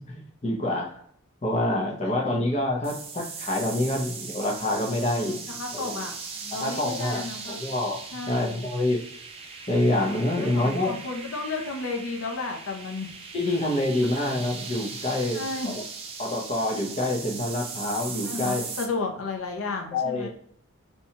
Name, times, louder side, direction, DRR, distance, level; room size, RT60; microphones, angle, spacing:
voice 1, 0.1-1.0 1.4-6.1 6.5-8.0 8.3-9.0 9.7-10.9 13.3-15.4 15.7-15.8 16.2-18.7 19.9-20.3, left 1 dB, 30° left, 0 dB, 0.6 m, -27 dB
voice 2, 2.0-2.4 5.5-7.6 8.1-8.7 10.4-13.1 15.3-15.8 18.2-20.3, left 3 dB, 75° left, 3 dB, 0.6 m, -33 dB
sound 1, 2.8-18.9, right 5 dB, 25° right, 0.3 m, -39 dB
2.7 x 2.3 x 2.8 m, 0.65 s
head